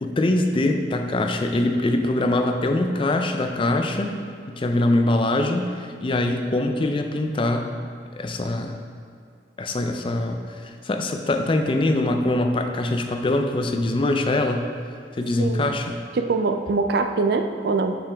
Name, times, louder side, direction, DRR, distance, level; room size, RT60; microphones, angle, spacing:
voice 1, 0.0-4.2 4.5-7.8 8.1-8.8 9.6-14.7 15.1-16.0, left 2 dB, 30° left, 5 dB, 0.4 m, -23 dB
voice 2, 15.4-15.8 16.2-18.0, right 3 dB, 60° right, 7 dB, 0.4 m, -23 dB
6.9 x 5.7 x 3.5 m, 2.4 s
head